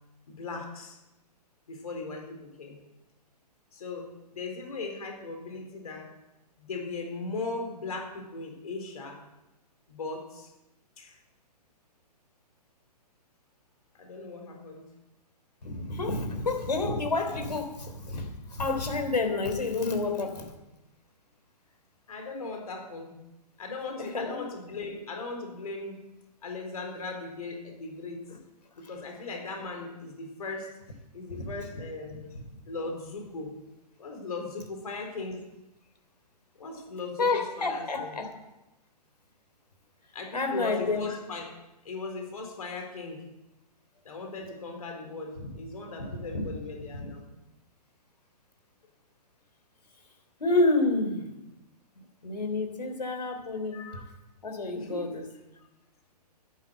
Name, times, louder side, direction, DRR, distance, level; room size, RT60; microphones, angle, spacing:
voice 1, 0.3-1.0 1.7-2.8 3.7-6.1 6.6-9.2 9.9-10.5 11.0-11.2 14.0-14.9 22.1-23.1 23.6-26.0 26.4-28.2 28.8-30.7 31.1-32.4 32.7-33.6 34.0-35.4 36.6-38.1 40.1-41.5 41.8-43.2 44.0-47.2 53.7-54.0 54.7-55.2, left 3 dB, 60° left, 3 dB, 4.0 m, -38 dB
voice 2, 15.6-20.5 23.9-24.4 28.3-28.4 28.8-28.9 31.3-31.4 37.2-38.3 40.3-41.0 45.4-45.5 46.1-46.6 46.9-47.1 50.4-51.3 51.9-54.0 54.4-55.3, left 3 dB, 75° left, 4 dB, 3.5 m, -29 dB
11.5 x 9.6 x 7.7 m, 0.95 s
figure-of-eight pair, 125°, 21 cm